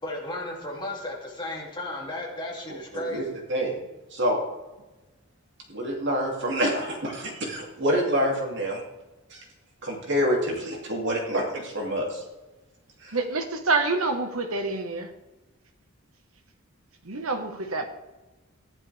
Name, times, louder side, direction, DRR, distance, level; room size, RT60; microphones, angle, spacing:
voice 1, 0.0-3.4, left 1 dB, 20° left, -2 dB, 2.7 m, -34 dB
voice 2, 3.5-3.8 4.1-4.4 5.7-8.8 9.3-9.4 9.8-12.2 13.0-13.2, equal, 60° right, 0 dB, 2.7 m, -27 dB
voice 3, 13.1-15.1 17.0-17.9, right 3 dB, 85° right, 6 dB, 1.4 m, -27 dB
14.5 x 11.0 x 3.4 m, 1.1 s
head